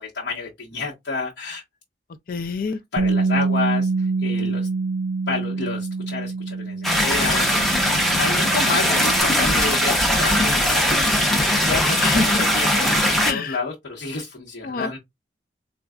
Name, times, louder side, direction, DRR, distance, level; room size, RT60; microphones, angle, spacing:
voice 1, 0.0-1.6 2.9-4.7 5.3-7.5 8.1-11.8 12.1-15.0, left 4 dB, 80° left, 1.1 m, -29 dB
voice 2, 2.3-2.8 12.0-12.5 13.2-13.6 14.6-14.9, left 4 dB, 50° left, 0.4 m, -26 dB
Bass guitar, 3.0-9.2, right 4 dB, 80° right, 0.5 m, -26 dB
sound 1, 6.8-13.3, equal, ahead, 1.0 m, -20 dB
4.2 x 2.4 x 2.4 m
head